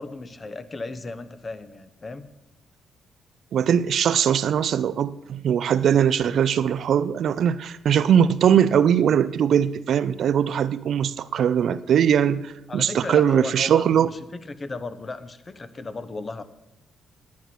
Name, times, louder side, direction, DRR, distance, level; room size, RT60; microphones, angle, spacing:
voice 1, 0.0-2.3 12.7-16.4, left 3 dB, 30° left, 1.0 m, -35 dB
voice 2, 3.5-14.1, right 8 dB, 65° right, 0.6 m, -21 dB
10.5 x 9.6 x 6.0 m
cardioid pair, 90°, 0 cm